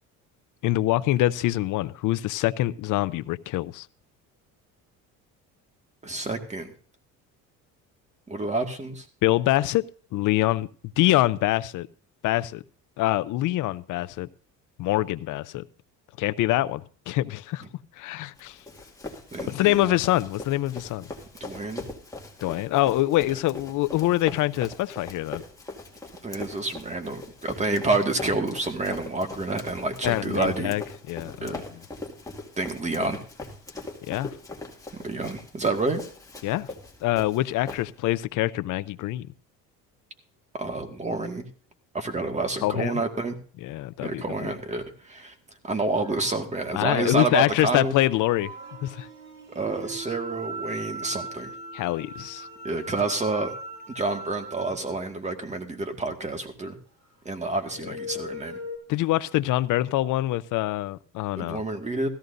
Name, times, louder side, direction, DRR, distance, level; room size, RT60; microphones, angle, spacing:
voice 1, 0.6-3.9 9.2-9.9 10.1-10.7 11.0-11.9 12.2-12.6 13.0-14.3 14.8-15.6 16.2-17.6 18.0-18.6 19.5-21.0 22.4-25.4 30.0-30.8 31.1-31.6 34.1-34.3 36.4-36.7 37.0-39.3 42.6-42.9 43.6-44.5 46.7-48.5 48.8-49.1 51.7-52.5 58.9-61.6, left 16 dB, 60° left, 0.6 m, -25 dB
voice 2, 6.0-6.7 8.3-9.1 19.3-20.0 21.4-21.8 26.2-30.8 31.4-31.6 32.6-33.2 35.0-36.0 40.5-41.5 41.9-43.4 44.0-45.3 45.6-47.9 49.5-51.5 52.6-53.5 54.0-56.8 57.3-58.6 61.4-62.1, right 3 dB, 20° right, 1.9 m, -28 dB
Run, 18.4-38.2, left 2 dB, 10° left, 2.2 m, -41 dB
sound 1, 45.9-55.0 57.6-58.8, right 1 dB, 55° right, 6.7 m, -40 dB
16.5 x 14.0 x 2.6 m
cardioid pair, 110°, 34 cm